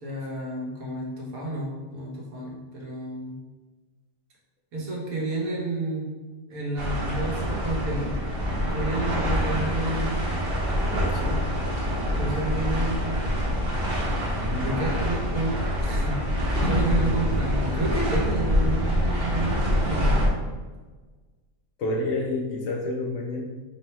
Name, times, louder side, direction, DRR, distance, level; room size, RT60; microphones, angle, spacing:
voice 1, 0.0-3.4 4.7-6.1 6.5-8.2 8.7-10.4 12.1-13.2 14.6-16.2 16.6-20.2, right 2 dB, 80° right, -3 dB, 1.4 m, -30 dB
sound 1, 6.8-20.3, equal, 50° right, 0.9 m, -25 dB
voice 2, 11.0-11.4 14.4-14.8 21.8-23.4, left 2 dB, 75° left, -1 dB, 1.0 m, -29 dB
3.5 x 2.1 x 4.1 m, 1.3 s
omnidirectional pair, 1.5 m